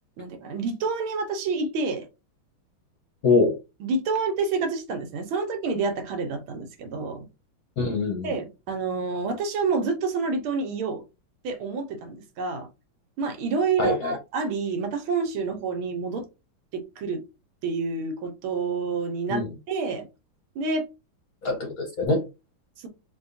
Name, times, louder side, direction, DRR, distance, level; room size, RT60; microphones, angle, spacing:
voice 1, 0.2-2.1 3.8-7.3 8.2-11.0 11.4-12.7 13.2-16.3 16.7-17.2 17.6-20.0 20.6-20.9, right 4 dB, 80° right, 1.7 m, -28 dB
voice 2, 3.2-3.6 7.8-8.3 13.8-14.2 19.3-19.5 21.4-22.2, left 3 dB, 55° left, 1.1 m, -24 dB
4.3 x 2.8 x 2.6 m
omnidirectional pair, 2.3 m